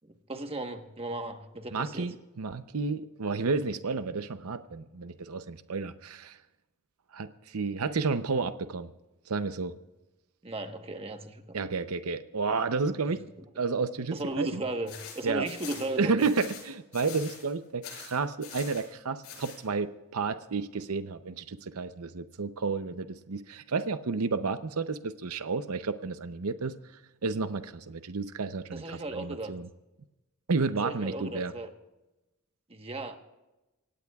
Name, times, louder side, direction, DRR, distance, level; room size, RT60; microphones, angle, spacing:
voice 1, 0.0-2.1 10.4-11.6 14.1-16.3 28.7-29.5 30.8-31.7 32.7-33.2, right 2 dB, 25° right, 5 dB, 1.2 m, -36 dB
voice 2, 1.7-6.4 7.1-8.9 9.3-9.7 11.5-13.2 13.6-14.6 15.2-15.5 16.0-26.8 27.2-29.7 30.5-31.5, right 4 dB, 80° right, 10 dB, 0.7 m, -31 dB
sound 1, 14.9-17.5 17.8-18.9 19.2-19.6, left 6 dB, 80° left, 7.1 m, -44 dB
25.0 x 17.5 x 2.4 m, 1.0 s
head